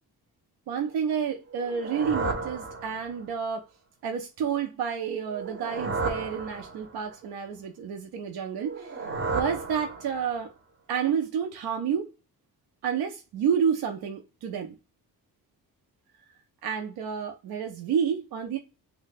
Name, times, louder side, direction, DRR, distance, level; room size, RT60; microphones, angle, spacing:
voice 1, 0.7-3.7 4.0-9.0 9.3-10.5 10.9-12.1 12.8-14.8 16.6-18.6, right 7 dB, 80° right, 0.6 m, -30 dB
sound 1, 1.5-3.3 5.3-7.1 8.6-10.4, right 3 dB, 30° right, 0.7 m, -33 dB
2.6 x 2.2 x 3.8 m
wide cardioid pair, 135°, 38 cm